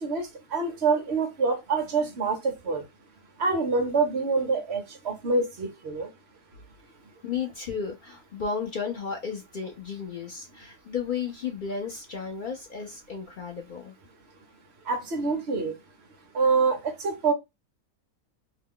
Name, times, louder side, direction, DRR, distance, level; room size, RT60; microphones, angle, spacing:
voice 1, 0.0-2.8 3.4-6.1 14.9-15.7 16.3-17.3, right 4 dB, 50° right, 1.0 m, -26 dB
voice 2, 7.2-13.9, left 6 dB, 70° left, 0.4 m, -33 dB
2.9 x 2.3 x 3.5 m
omnidirectional pair, 1.6 m